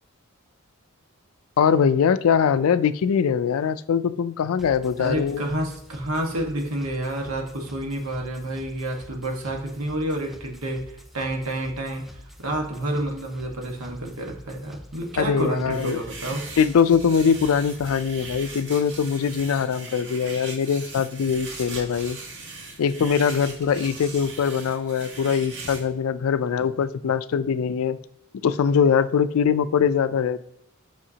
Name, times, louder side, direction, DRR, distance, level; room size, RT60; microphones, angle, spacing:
voice 1, 1.6-5.4 15.2-16.0 16.6-22.2 22.8-28.0 28.4-30.4, left 7 dB, 80° left, 15 dB, 0.4 m, -22 dB
sound 1, 4.6-18.6, equal, ahead, 0.4 m, -46 dB
voice 2, 5.0-16.4, right 1 dB, 90° right, 1 dB, 1.4 m, -29 dB
sound 2, 15.7-25.8, right 3 dB, 60° right, 1.8 m, -39 dB
8.5 x 5.7 x 2.8 m, 0.78 s
head